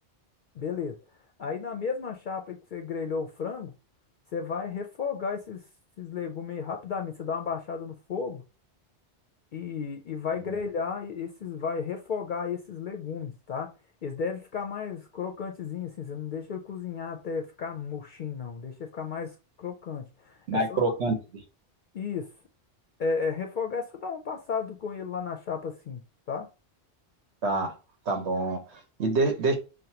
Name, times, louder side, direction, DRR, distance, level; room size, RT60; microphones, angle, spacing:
voice 1, 0.6-1.0 1.4-3.7 4.3-5.6 6.0-8.4 9.5-13.7 14.0-19.3 19.6-20.9 21.9-22.3 23.0-26.0 26.3-26.5, left 6 dB, 55° left, 0.6 m, -33 dB
voice 2, 20.5-21.4 27.4-27.7 28.1-29.5, right 2 dB, 75° right, 1.2 m, -27 dB
6.4 x 2.1 x 2.8 m
omnidirectional pair, 1.1 m